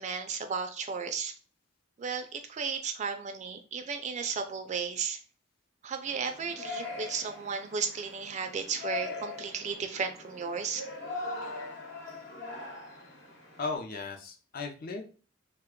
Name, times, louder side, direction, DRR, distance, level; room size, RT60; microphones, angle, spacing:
voice 1, 0.0-1.3 2.0-5.2 5.8-10.8, right 5 dB, 35° right, 7 dB, 0.3 m, -34 dB
Yell, 6.1-13.8, left 3 dB, 60° left, 1.1 m, -41 dB
voice 2, 13.6-15.0, left 4 dB, 45° left, 3 dB, 0.5 m, -36 dB
3.2 x 2.2 x 3.6 m, 0.38 s
head